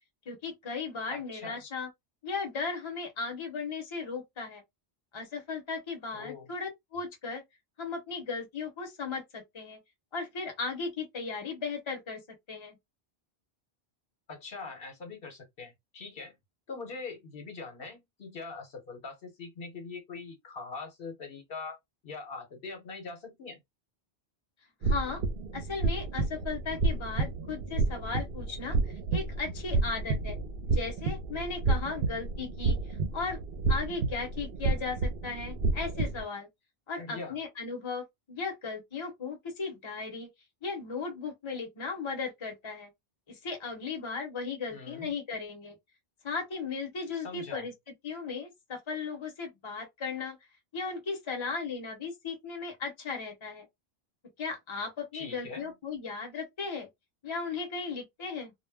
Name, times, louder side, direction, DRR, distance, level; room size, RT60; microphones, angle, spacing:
voice 1, 0.3-1.9 2.2-4.6 5.1-7.4 7.8-9.8 10.1-12.2 12.5-12.8 24.8-25.2 25.5-28.8 29.1-30.4 30.7-32.8 33.1-33.4 33.7-36.5 36.9-40.3 40.6-42.9 43.3-45.8 46.2-47.7 48.0-50.4 50.7-53.7 54.4-56.9 57.2-58.5, left 4 dB, 30° left, 0.8 m, -36 dB
voice 2, 1.1-1.6 6.1-6.5 14.3-16.3 16.7-21.8 22.0-23.6 37.0-37.4 44.7-45.1 47.1-47.7 55.1-55.7, left 4 dB, 65° left, 1.0 m, -42 dB
sound 1, 24.8-36.2, right 3 dB, 70° right, 0.8 m, -30 dB
2.2 x 2.0 x 3.3 m
omnidirectional pair, 1.1 m